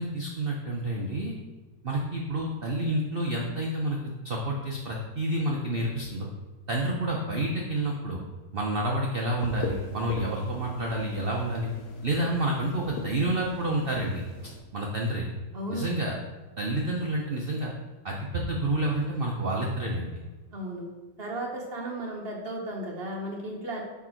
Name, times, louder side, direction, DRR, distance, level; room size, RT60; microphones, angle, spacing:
voice 1, 0.0-1.3 1.8-4.0 4.2-6.3 6.7-8.2 8.5-11.7 12.0-15.3 15.7-16.1 16.6-17.7 18.0-20.1, right 1 dB, 90° right, -2 dB, 0.5 m, -29 dB
sound 1, 9.4-14.6, left 3 dB, 70° left, 1.2 m, -40 dB
voice 2, 15.5-15.9 20.5-20.9 21.2-23.8, right 1 dB, 45° right, 0 dB, 0.9 m, -34 dB
6.0 x 3.5 x 4.4 m, 1.3 s
omnidirectional pair, 1.9 m